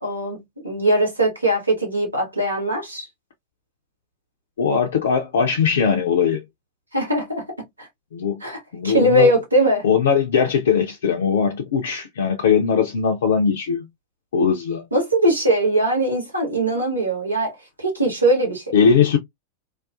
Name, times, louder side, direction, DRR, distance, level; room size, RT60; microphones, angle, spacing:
voice 1, 0.0-3.1 6.9-7.5 7.8-7.9 8.4-9.8 14.9-18.7, right 1 dB, 80° right, 1.1 m, -21 dB
voice 2, 4.6-6.4 8.1-8.4 8.7-9.3 9.8-13.9 14.3-14.9 18.7-19.2, left 6 dB, 60° left, 0.4 m, -20 dB
2.4 x 2.3 x 2.4 m
figure-of-eight pair, 90°, 0 cm